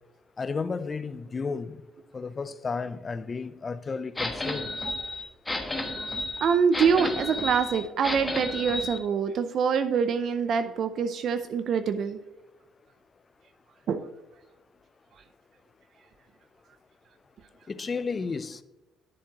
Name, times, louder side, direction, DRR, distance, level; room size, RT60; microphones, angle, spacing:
voice 1, 0.4-1.8 2.1-4.7 17.7-18.6, left 4 dB, 30° left, 0.5 m, -32 dB
sound 1, 4.2-9.0, left 2 dB, 10° left, 1.2 m, -32 dB
voice 2, 6.4-12.2 13.9-14.0, right 6 dB, 55° right, 0.5 m, -25 dB
10.0 x 7.1 x 2.9 m
cardioid pair, 105°, 0 cm